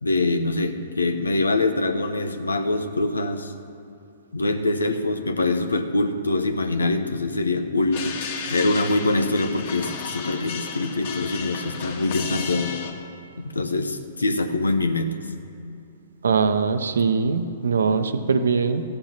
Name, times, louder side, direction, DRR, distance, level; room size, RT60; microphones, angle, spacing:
voice 1, 0.0-3.5 4.3-8.2 8.5-12.7 13.4-15.2, left 2 dB, 90° left, 8 dB, 1.0 m, -24 dB
sound 1, 7.9-12.9, left 6 dB, 55° left, 1.5 m, -34 dB
voice 2, 16.2-18.8, right 5 dB, 75° right, 9 dB, 1.0 m, -22 dB
14.0 x 9.0 x 6.0 m, 2.7 s
hypercardioid pair, 120°, 0 cm